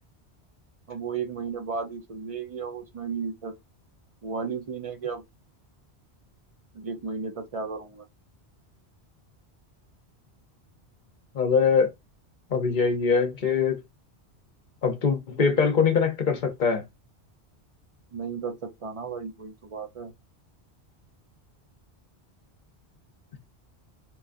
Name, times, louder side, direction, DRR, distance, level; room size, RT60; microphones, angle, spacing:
voice 1, 0.9-3.5 4.2-5.2 6.7-8.0 18.1-20.1, right 5 dB, 45° right, 0.5 m, -34 dB
voice 2, 11.3-11.9 12.5-13.8 14.8-16.8, left 5 dB, 50° left, 0.8 m, -23 dB
3.6 x 3.1 x 2.5 m
omnidirectional pair, 1.1 m